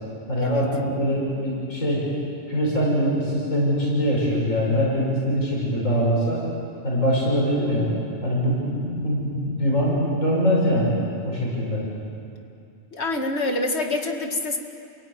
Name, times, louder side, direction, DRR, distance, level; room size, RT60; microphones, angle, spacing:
voice 1, 0.3-2.0 2.5-6.4 6.8-7.9 8.2-11.0 11.2-11.8, equal, 75° left, -4 dB, 6.2 m, -23 dB
voice 2, 12.9-14.6, left 2 dB, 55° left, 4 dB, 2.2 m, -26 dB
29.0 x 16.5 x 9.6 m, 2.5 s
omnidirectional pair, 1.3 m